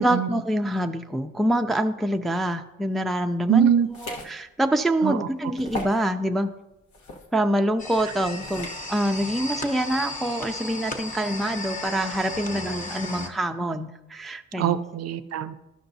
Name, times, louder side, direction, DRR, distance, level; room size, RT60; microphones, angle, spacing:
voice 1, 0.0-6.5 7.3-14.8, right 1 dB, ahead, 5 dB, 0.4 m, -26 dB
voice 2, 3.5-3.9 5.0-5.2 14.6-15.5, right 9 dB, 55° right, 11 dB, 0.5 m, -22 dB
sound 1, 3.9-4.3 4.8-4.9 5.6-6.0 6.9-7.3 8.4-8.8, left 2 dB, 75° left, 1.3 m, -36 dB
sound 2, 7.8-13.3, left 2 dB, 25° left, 1.0 m, -35 dB
12.0 x 5.8 x 2.7 m, 0.93 s
cardioid pair, 90°, 30 cm